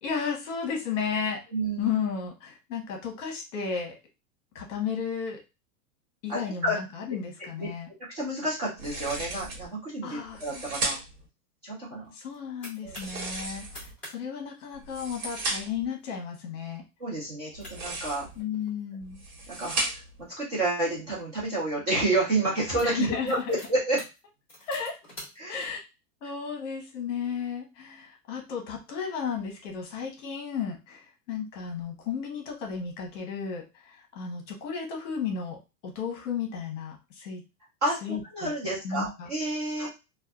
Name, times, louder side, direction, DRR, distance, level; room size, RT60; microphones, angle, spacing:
voice 1, 0.0-1.4 1.8-4.0 4.5-5.4 6.2-7.9 10.0-10.6 12.1-16.8 18.4-19.2 22.8-23.4 24.6-25.0 25.5-25.8 26.2-37.4 38.0-39.3 39.8-39.9, left 6 dB, 50° left, 1 dB, 0.9 m, -34 dB
voice 2, 1.5-1.9 6.3-6.8 7.6-7.7 8.1-11.0 11.6-12.1 12.8-13.0 17.0-18.3 19.5-20.0 20.4-24.0 25.4-25.6 37.8-39.9, right 2 dB, 25° right, -6 dB, 0.5 m, -29 dB
sound 1, 8.8-9.7 10.3-11.3 12.8-13.9 14.7-15.9 17.5-18.4 19.0-20.2, right 2 dB, 60° right, 1.2 m, -35 dB
sound 2, 12.0-13.2 13.6-14.2 14.4-14.5 14.9-15.2 15.8-16.0 16.5-16.6 17.3-17.4 17.6-18.8 19.4-21.3 22.0-22.2 22.5-25.7, equal, 5° left, 0.7 m, -48 dB
2.6 x 2.2 x 2.3 m, 0.27 s
supercardioid pair, 175°, 48 cm